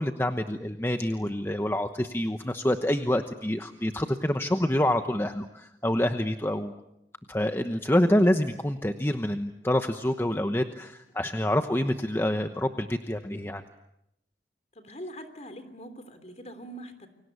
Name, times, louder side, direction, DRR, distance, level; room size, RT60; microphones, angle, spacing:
voice 1, 0.0-6.7 7.3-13.6, left 1 dB, 15° left, 7 dB, 1.0 m, -27 dB
voice 2, 14.7-17.1, equal, 40° left, 9 dB, 3.4 m, -43 dB
29.5 x 24.0 x 8.3 m, 0.83 s
head